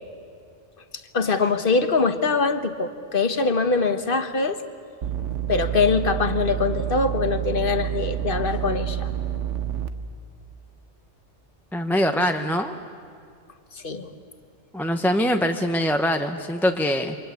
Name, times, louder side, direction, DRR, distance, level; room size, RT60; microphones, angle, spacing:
voice 1, 1.1-4.6 5.5-9.1 13.7-14.1, left 4 dB, 50° left, 9 dB, 1.5 m, -23 dB
sound 1, 5.0-9.9, right 11 dB, 90° right, 1.4 m, -28 dB
voice 2, 11.7-12.7 14.7-17.2, equal, ahead, 5 dB, 0.8 m, -23 dB
28.5 x 25.0 x 8.3 m, 2.4 s
omnidirectional pair, 1.2 m